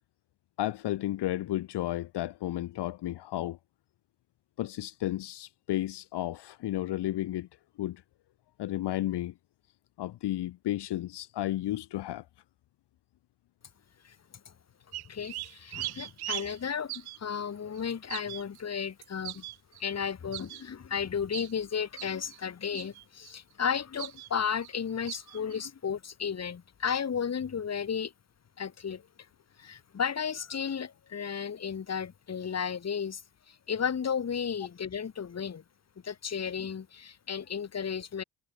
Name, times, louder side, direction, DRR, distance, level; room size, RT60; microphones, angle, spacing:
voice 1, 0.6-3.6 4.6-7.5 7.8-8.0 8.6-9.3 10.0-12.3, left 14 dB, 55° left, 1.9 m, -32 dB
sound 1, 14.9-17.2 17.8-19.9 20.3-20.6 21.3-21.5 22.0-22.4 22.7-23.3 24.0-24.3 24.6-24.8 25.1-25.6, right 18 dB, 50° right, 0.8 m, -39 dB
voice 2, 15.1-19.4 19.8-28.1 28.6-29.0 29.6-33.2 33.5-35.6 36.0-38.2, left 7 dB, 30° left, 2.5 m, -33 dB
hypercardioid pair, 65°, 48 cm